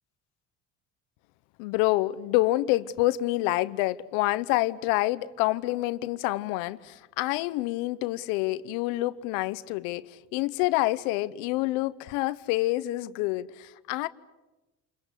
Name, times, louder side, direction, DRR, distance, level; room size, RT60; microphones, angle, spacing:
voice 1, 1.6-14.1, left 18 dB, 90° left, 0.9 m, -27 dB
28.5 x 22.0 x 8.2 m
supercardioid pair, 90°, 33 cm